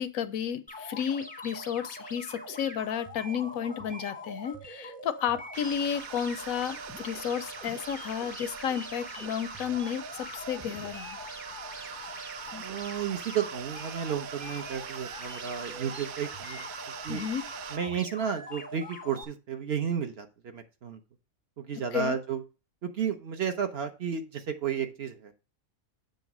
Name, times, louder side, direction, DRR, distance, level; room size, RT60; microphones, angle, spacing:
voice 1, 0.0-11.2 17.1-17.4 21.9-22.2, left 8 dB, 90° left, 12 dB, 1.1 m, -32 dB
sound 1, 0.7-19.2, left 1 dB, 10° left, 0.6 m, -43 dB
sound 2, 5.5-17.8, right 10 dB, 85° right, 1.0 m, -43 dB
voice 2, 12.5-16.7 17.0-17.2 17.7-21.0 21.6-22.4 22.8-25.3, right 7 dB, 55° right, 7 dB, 1.0 m, -32 dB
8.0 x 3.0 x 6.0 m, 0.30 s
omnidirectional pair, 1.4 m